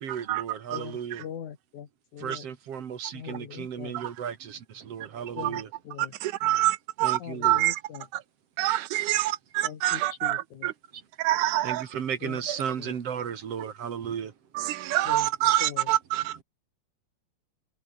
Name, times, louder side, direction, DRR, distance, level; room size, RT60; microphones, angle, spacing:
voice 1, 0.0-1.2 2.2-5.7 7.0-7.6 9.2-9.3 10.9-11.0 11.6-14.3 16.2-16.4, right 8 dB, 55° right, 2.7 m, -35 dB
voice 2, 0.7-2.5 3.1-4.0 5.4-6.1 7.2-8.1 9.6-10.7 12.2-12.5 12.8-13.0 15.0-15.3 15.6-15.9, left 9 dB, 80° left, 3.6 m, -41 dB
voice 3, 6.0-7.8 8.6-10.7 11.2-11.8 14.6-16.3, right 15 dB, 85° right, 2.4 m, -26 dB
omnidirectional pair, 3.4 m